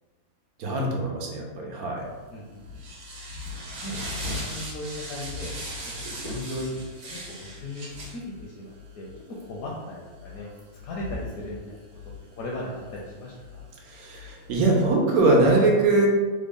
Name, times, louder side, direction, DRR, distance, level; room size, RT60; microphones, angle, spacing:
voice 1, 0.6-2.1 13.8-16.1, right 2 dB, 85° right, 0 dB, 1.1 m, -22 dB
sound 1, 2.1-14.5, left 1 dB, 55° right, 1.2 m, -39 dB
voice 2, 2.3-2.7 3.8-5.5 5.8-9.1 9.5-10.5 10.8-11.8 12.4-13.7, left 1 dB, 75° left, -3 dB, 1.0 m, -37 dB
3.4 x 2.1 x 3.5 m, 1.4 s
omnidirectional pair, 1.5 m